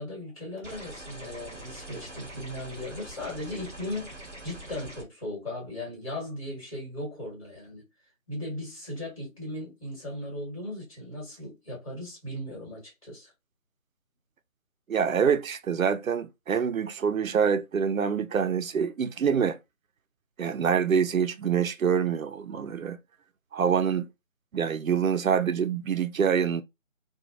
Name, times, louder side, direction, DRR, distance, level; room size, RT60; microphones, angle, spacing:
voice 1, 0.0-7.8 8.3-13.3, left 1 dB, 25° left, 1.6 m, -37 dB
sound 1, 0.6-5.0, right 1 dB, 10° right, 1.3 m, -43 dB
voice 2, 14.9-19.6 20.4-23.0 23.5-24.1 24.5-26.6, right 7 dB, 80° right, 0.6 m, -26 dB
3.0 x 2.3 x 2.4 m
figure-of-eight pair, 165°, 41 cm